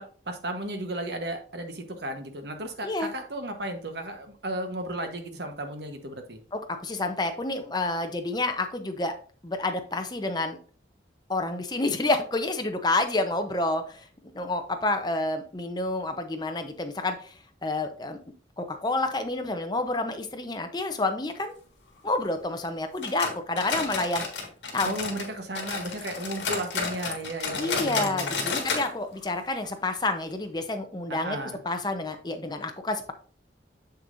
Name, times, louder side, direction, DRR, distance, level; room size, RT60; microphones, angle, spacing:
voice 1, 0.0-6.4 24.8-28.5 31.1-31.6, right 1 dB, 65° right, 6 dB, 1.2 m, -34 dB
voice 2, 6.5-9.1 9.4-10.6 11.3-14.1 14.3-17.3 17.6-18.2 18.6-21.5 22.0-24.2 24.7-25.0 27.6-31.4 31.6-33.1, left 2 dB, 25° left, 6 dB, 0.8 m, -29 dB
sound 1, 23.0-25.3 25.5-28.9 29.1-29.2 29.6-29.7 30.3-30.4, left 4 dB, 75° left, 1.8 m, -31 dB
7.2 x 6.5 x 2.6 m, 0.41 s
head